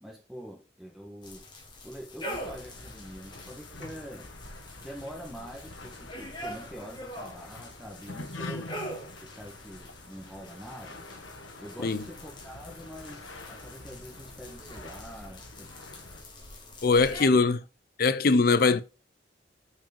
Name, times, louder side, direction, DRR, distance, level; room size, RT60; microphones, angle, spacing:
voice 1, 0.0-1.4 1.8-4.3 4.8-8.8 9.2-11.1 11.6-15.7 17.2-17.4, equal, ahead, 1.4 m, -45 dB
sound 1, 1.2-17.3, equal, 25° left, 1.6 m, -44 dB
sound 2, 2.3-16.2, left 2 dB, 85° left, 1.3 m, -46 dB
voice 2, 16.8-17.6 18.0-18.8, left 4 dB, 50° left, 0.5 m, -21 dB
6.0 x 4.8 x 5.1 m
head